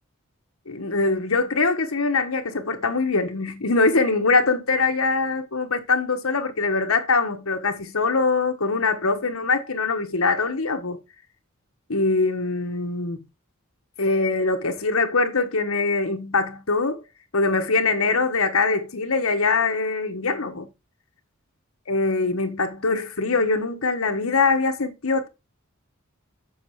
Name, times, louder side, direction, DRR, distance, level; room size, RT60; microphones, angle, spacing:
voice 1, 0.7-11.0 11.9-13.2 14.0-17.0 17.3-20.7 21.9-25.3, left 3 dB, 85° left, 1.3 m, -23 dB
7.3 x 5.3 x 4.8 m
head